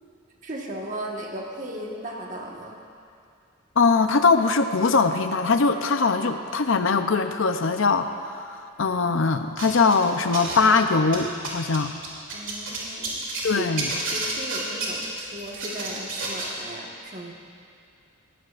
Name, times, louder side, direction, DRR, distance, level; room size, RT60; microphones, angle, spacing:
voice 1, 0.4-2.8 12.3-13.2 13.5-13.7 14.0-17.3, right 1 dB, 35° right, 0 dB, 1.4 m, -36 dB
voice 2, 3.8-11.9 13.4-13.9, left 4 dB, 65° left, 8 dB, 0.6 m, -21 dB
sound 1, 9.6-10.8 11.1-13.5 13.8-16.5, right 3 dB, 60° right, 2.9 m, -30 dB
20.0 x 15.5 x 2.5 m, 2.4 s
head